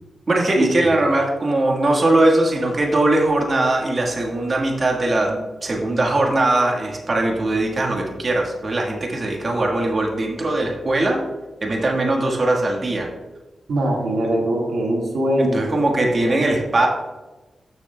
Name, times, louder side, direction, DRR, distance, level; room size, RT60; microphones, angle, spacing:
voice 1, 0.3-11.2 11.6-13.1 15.4-16.9, right 2 dB, 50° right, 0 dB, 1.4 m, -20 dB
voice 2, 13.7-15.7 16.3-16.4, right 1 dB, 90° right, -1 dB, 1.6 m, -21 dB
12.5 x 7.0 x 2.2 m, 1.1 s
cardioid pair, 70°, 0 cm